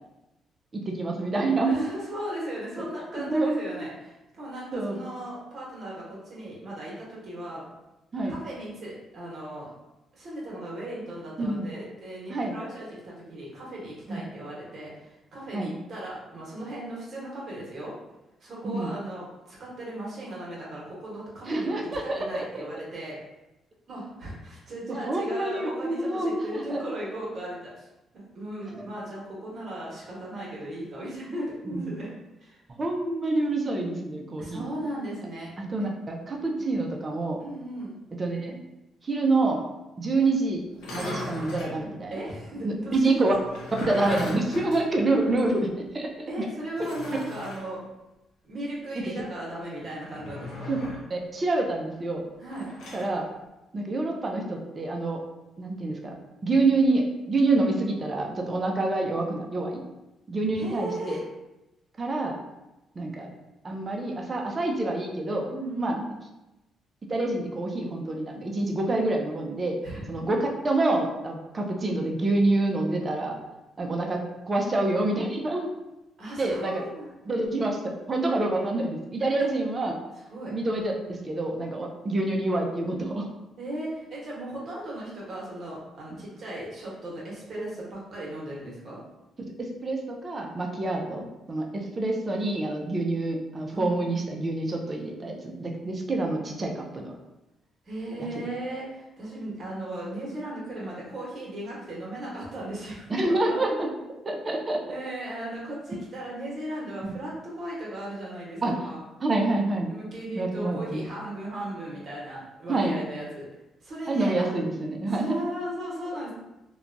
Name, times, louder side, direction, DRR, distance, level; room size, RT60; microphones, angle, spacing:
voice 1, 0.7-1.8 2.8-2.9 3.1-3.6 4.7-5.0 8.1-8.3 11.4-11.7 12.3-12.5 14.1-14.2 15.5-15.7 18.6-18.9 21.4-22.6 25.1-26.8 31.7-31.9 32.8-34.6 35.6-37.4 38.2-38.6 39.0-39.6 40.0-40.6 40.9-42.1 42.6-43.3 43.9-45.7 45.9-46.5 50.7-50.8 51.1-52.2 52.9-53.2 53.7-55.2 55.6-56.1 56.4-59.8 60.3-61.2 62.0-62.3 63.0-63.3 63.6-65.5 65.8-66.0 67.1-69.8 70.1-73.4 73.8-74.2 74.5-75.7 76.4-76.8 77.3-80.0 80.5-83.3 86.1-86.2 89.6-97.1 103.1-103.9 104.2-104.8 108.6-108.7 109.2-109.9 110.4-111.0 112.7-112.9 114.1-115.4, right 2 dB, 30° right, 1 dB, 0.4 m, -27 dB
voice 2, 1.6-7.6 8.3-9.7 10.1-17.9 18.4-23.2 23.9-27.8 28.1-32.1 32.4-32.6 34.4-35.5 35.8-35.9 37.4-37.9 42.1-43.0 46.3-47.8 48.4-50.7 52.4-52.7 60.5-61.2 65.4-66.0 69.8-70.1 76.2-77.1 79.4-79.5 80.3-80.5 83.6-89.0 93.7-93.9 97.9-103.1 103.4-103.6 104.9-109.0 109.9-113.5 113.8-114.5 114.9-116.3, right 1 dB, 55° right, -5 dB, 1.0 m, -37 dB
sound 1, 40.7-41.8 43.3-45.6 45.9-46.0 46.8-47.6 50.1-51.1 52.5-53.1, left 2 dB, 90° left, 0.6 m, -38 dB
2.8 x 2.2 x 2.5 m, 0.97 s
cardioid pair, 90°, 0 cm